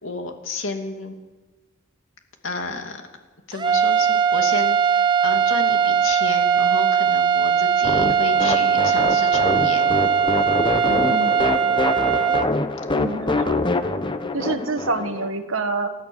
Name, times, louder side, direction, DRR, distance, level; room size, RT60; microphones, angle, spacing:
voice 1, 0.0-1.1 2.4-3.0 3.5-9.8, left 3 dB, 65° left, 4 dB, 2.7 m, -31 dB
sound 1, 3.5-12.5, right 7 dB, 20° right, 0.9 m, -19 dB
sound 2, 7.8-15.3, left 2 dB, 25° left, 1.0 m, -25 dB
voice 2, 10.9-11.6 12.9-13.6 14.3-15.9, right 3 dB, 70° right, 7 dB, 1.6 m, -27 dB
30.0 x 13.0 x 7.3 m, 1.3 s
head